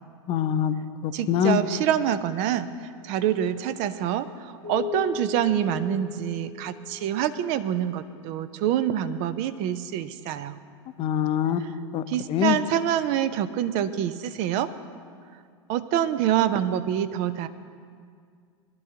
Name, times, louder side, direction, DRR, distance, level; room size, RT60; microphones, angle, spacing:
voice 1, 0.3-1.6 11.0-11.6 11.9-12.0 12.3-12.6, left 10 dB, 35° left, 10 dB, 0.7 m, -24 dB
voice 2, 1.1-2.7 3.0-10.6 11.6-11.7 12.1-14.7 15.7-17.5, right 10 dB, 45° right, 12 dB, 0.7 m, -26 dB
Keyboard (musical), 4.6-7.6, left 6 dB, 85° right, 4.1 m, -36 dB
20.5 x 12.5 x 2.9 m, 2.1 s
hypercardioid pair, 100°, 16 cm